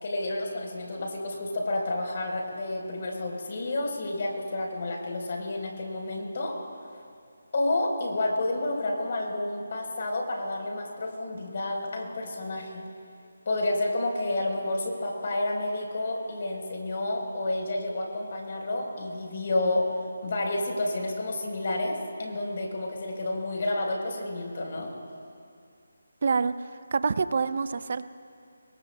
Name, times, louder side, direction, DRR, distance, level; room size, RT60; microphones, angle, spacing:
voice 1, 0.0-6.6 7.5-12.8 13.5-19.9 20.2-24.9, left 2 dB, 50° left, 1 dB, 3.9 m, -30 dB
voice 2, 26.2-28.0, right 5 dB, 50° right, 14 dB, 0.5 m, -27 dB
27.5 x 22.0 x 2.2 m, 2.4 s
figure-of-eight pair, 160°, 0 cm